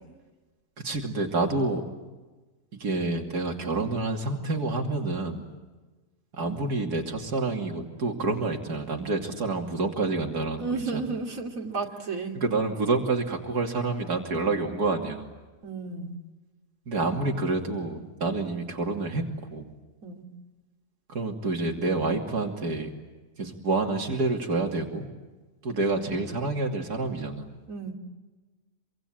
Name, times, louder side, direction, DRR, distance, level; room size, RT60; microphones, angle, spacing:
voice 1, 0.8-1.8 2.8-5.5 6.4-11.0 12.3-15.3 16.9-19.2 19.5-19.7 21.1-22.9 23.4-25.1 25.6-27.5, right 3 dB, 85° right, 2 dB, 3.3 m, -28 dB
voice 2, 10.6-12.4 15.6-16.2 20.0-20.3 27.7-27.9, right 4 dB, 60° right, 1 dB, 3.2 m, -33 dB
26.5 x 25.0 x 8.8 m, 1.2 s
omnidirectional pair, 1.6 m